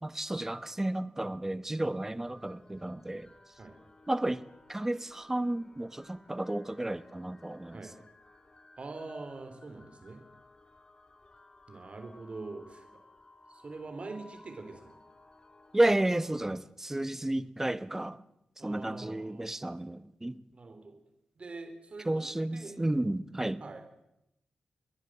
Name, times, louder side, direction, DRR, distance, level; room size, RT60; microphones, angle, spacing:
voice 1, 0.0-3.3 4.1-4.4 4.7-7.8 15.7-18.2 18.6-20.4 22.0-23.6, right 1 dB, 15° right, 1.0 m, -32 dB
sound 1, 2.2-16.5, left 2 dB, 30° left, 2.9 m, -59 dB
voice 2, 8.8-10.2 11.7-12.8 13.5-15.0 18.6-19.5 20.5-21.0 21.4-22.2 22.5-22.8 23.6-23.8, right 3 dB, 45° right, 3.7 m, -44 dB
30.0 x 11.0 x 7.9 m
cardioid pair, 85°, 3 cm